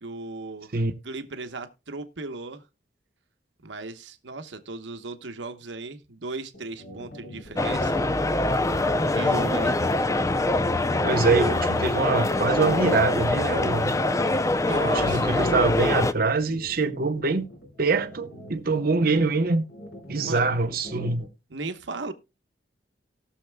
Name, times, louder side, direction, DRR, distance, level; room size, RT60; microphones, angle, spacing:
voice 1, 0.0-0.7 1.0-2.6 3.6-8.1 9.1-9.7 14.6-15.5 20.2-20.5 21.5-22.1, right 3 dB, 85° right, 1.0 m, -36 dB
sound 1, 6.5-21.3, left 1 dB, 90° left, 5.3 m, -43 dB
sound 2, 7.6-16.1, left 2 dB, 15° left, 0.5 m, -24 dB
voice 2, 11.0-13.9 14.9-17.5 17.8-19.6 20.1-21.2, right 3 dB, 55° right, 0.9 m, -24 dB
19.0 x 6.5 x 2.2 m
head